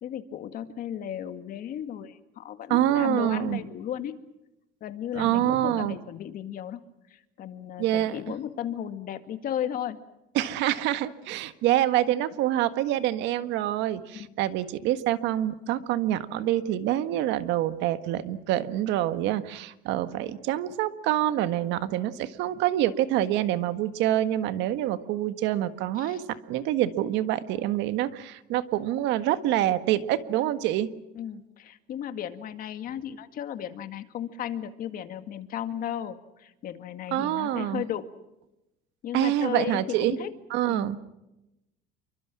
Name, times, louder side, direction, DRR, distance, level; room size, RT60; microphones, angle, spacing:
voice 1, 0.0-4.1 4.8-6.8 7.1-10.0 14.1-14.3 20.1-20.4 26.0-26.2 31.2-38.1 39.0-40.3 40.7-40.9, left 10 dB, 45° left, 9 dB, 2.0 m, -35 dB
voice 2, 2.7-3.6 5.1-5.9 7.8-8.2 10.3-30.9 37.1-37.8 39.1-40.2 40.5-41.0, right 13 dB, 65° right, 11 dB, 1.6 m, -26 dB
28.5 x 24.0 x 6.2 m, 0.93 s
cardioid pair, 145°, 20 cm